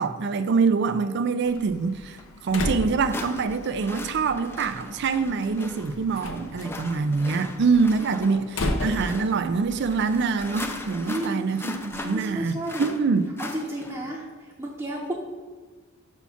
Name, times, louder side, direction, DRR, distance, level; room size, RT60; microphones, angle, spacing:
voice 1, 0.0-13.3, right 4 dB, 55° right, 0.4 m, -25 dB
Slam, 1.5-10.9, left 1 dB, 75° left, 0.8 m, -35 dB
sound 1, 2.2-2.3 3.1-14.2, left 2 dB, 10° left, 0.5 m, -38 dB
voice 2, 11.0-11.5 11.9-12.9 13.4-14.2 14.6-15.1, right 1 dB, 15° right, 0.8 m, -32 dB
5.7 x 4.4 x 5.7 m
head